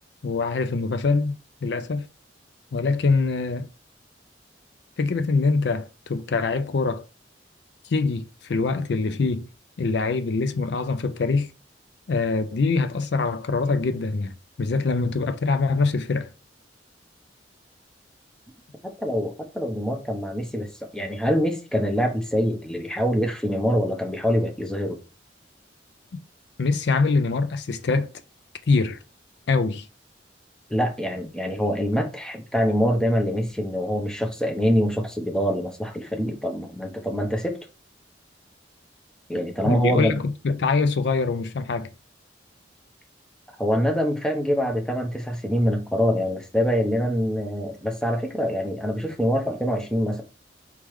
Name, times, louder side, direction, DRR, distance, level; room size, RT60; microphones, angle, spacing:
voice 1, 0.2-1.4 1.6-2.1 2.7-3.7 5.0-7.1 7.8-9.5 9.8-11.5 12.1-16.3 26.6-28.1 28.7-29.0 29.5-29.9 39.6-41.9, left 4 dB, 65° left, 0.4 m, -24 dB
voice 2, 18.8-25.0 30.7-37.6 39.3-40.2 43.6-50.2, equal, 5° left, 0.8 m, -25 dB
4.6 x 3.6 x 3.1 m
head